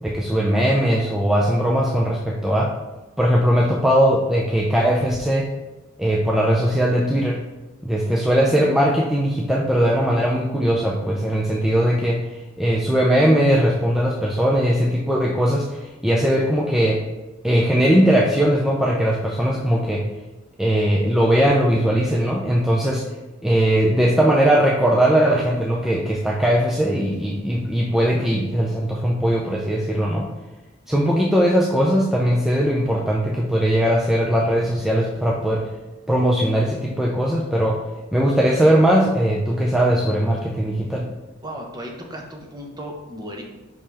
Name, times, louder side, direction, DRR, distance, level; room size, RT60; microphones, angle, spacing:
voice 1, 0.0-2.7 3.2-5.5 6.0-7.4 7.8-17.0 17.4-20.0 20.6-23.0 23.4-30.3 30.9-35.7 36.1-37.8 38.1-41.1, equal, ahead, -3 dB, 0.5 m, -19 dB
voice 2, 41.4-43.4, equal, 20° right, 1 dB, 1.0 m, -35 dB
5.4 x 5.4 x 3.4 m, 1.1 s
head